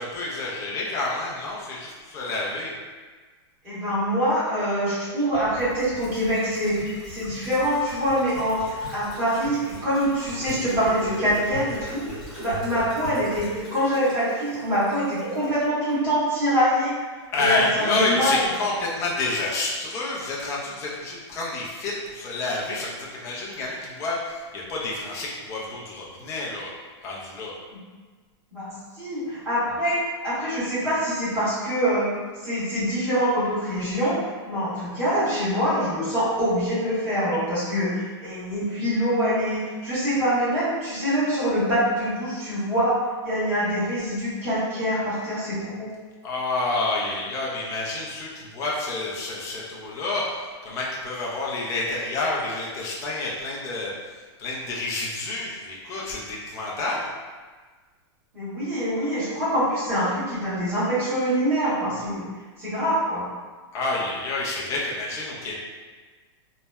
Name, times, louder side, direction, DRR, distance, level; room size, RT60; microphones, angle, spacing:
voice 1, 0.0-2.7 17.3-26.7 27.0-27.5 46.2-53.9 54.4-57.0 63.7-65.6, left 2 dB, 20° left, -4 dB, 0.4 m, -29 dB
voice 2, 3.6-12.0 12.4-16.9 17.4-18.5 27.7-27.8 28.5-32.1 32.4-34.2 34.5-45.9 58.3-62.2 62.6-63.3, equal, 15° right, -13 dB, 1.2 m, -25 dB
sound 1, 5.3-15.7 16.0-16.1, equal, 5° left, 0.8 m, -39 dB
2.8 x 2.0 x 2.2 m, 1.4 s
supercardioid pair, 160°, 15 cm